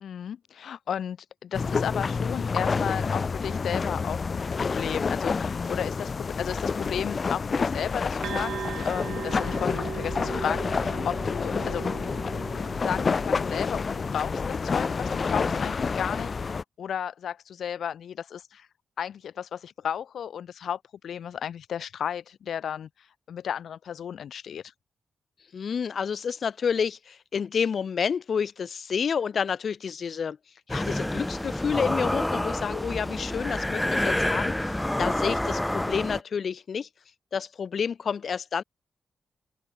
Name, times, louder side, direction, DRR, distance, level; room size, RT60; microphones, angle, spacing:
voice 1, 0.0-11.8 12.8-18.7 19.0-24.7, left 8 dB, 80° left, 1.7 m, -34 dB
sound 1, 1.5-16.6, left 5 dB, 45° left, 0.6 m, -28 dB
sound 2, 8.2-15.7, right 8 dB, 80° right, 4.4 m, -40 dB
voice 2, 25.5-30.4 30.7-36.9 37.3-38.6, left 6 dB, 60° left, 2.0 m, -29 dB
sound 3, 30.7-36.2, left 1 dB, 10° left, 0.9 m, -28 dB
open air
cardioid pair, 95°, 0 cm